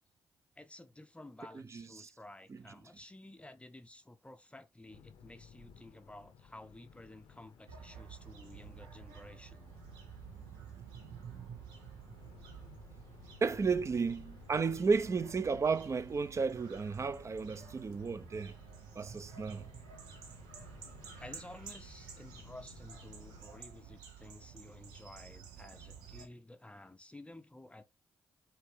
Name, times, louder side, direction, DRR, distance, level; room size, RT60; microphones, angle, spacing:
voice 1, 0.6-9.7 21.2-27.8, left 1 dB, 15° left, 0.6 m, -53 dB
voice 2, 1.5-2.1 2.5-2.6 10.9-11.6 13.4-18.5 19.0-19.7, right 5 dB, 40° right, 0.6 m, -33 dB
sound 1, 4.9-23.4, left 6 dB, 75° left, 0.7 m, -58 dB
sound 2, 7.7-26.3, right 7 dB, 80° right, 0.9 m, -52 dB
5.1 x 2.7 x 3.2 m
hypercardioid pair, 45°, 8 cm